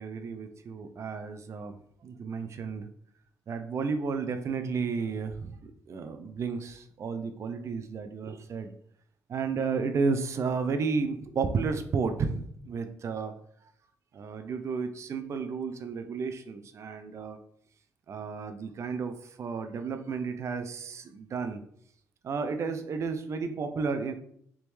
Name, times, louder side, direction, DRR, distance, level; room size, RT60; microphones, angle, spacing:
voice 1, 0.0-1.8 2.0-2.9 3.5-8.7 9.3-13.3 14.1-17.4 18.1-21.6 22.2-24.1, right 5 dB, 45° right, 9 dB, 0.5 m, -32 dB
3.9 x 3.5 x 3.1 m, 0.68 s
cardioid pair, 80°, 6 cm